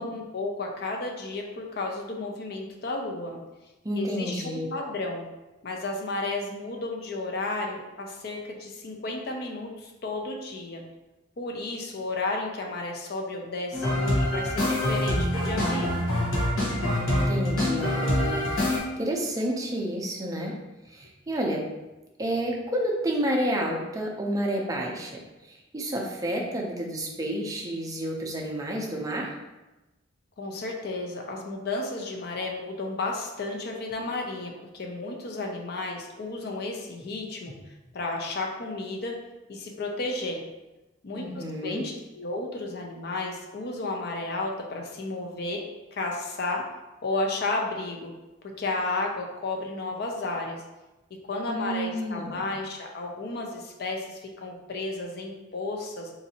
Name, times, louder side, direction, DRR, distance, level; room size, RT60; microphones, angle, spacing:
voice 1, 0.0-3.4 3.9-5.3 5.6-10.8 11.4-16.1 30.4-37.5 37.9-39.2 39.5-40.4 41.0-45.6 45.9-46.7 47.0-48.1 48.4-50.6 51.1-56.1, left 2 dB, 50° left, 1 dB, 0.5 m, -33 dB
voice 2, 3.8-4.7 16.7-20.6 20.9-21.6 22.2-29.4 41.1-41.8 51.5-52.4, equal, 15° right, -1 dB, 0.5 m, -30 dB
sound 1, 13.7-18.8, left 1 dB, 90° left, 0.9 m, -25 dB
3.9 x 2.6 x 2.7 m, 1.1 s
head